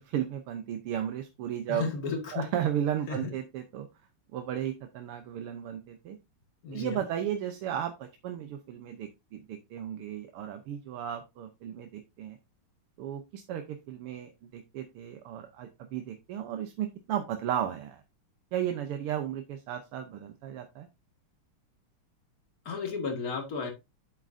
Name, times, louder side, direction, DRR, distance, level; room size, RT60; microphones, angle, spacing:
voice 1, 0.0-1.9 2.3-3.9 4.3-6.2 6.7-12.4 13.0-18.0 18.5-20.9, right 10 dB, 90° right, 6 dB, 1.8 m, -34 dB
voice 2, 1.7-2.5 3.1-3.3 6.6-7.0 22.7-23.7, left 4 dB, 45° left, 4 dB, 2.3 m, -33 dB
8.8 x 7.5 x 2.7 m, 0.23 s
omnidirectional pair, 2.4 m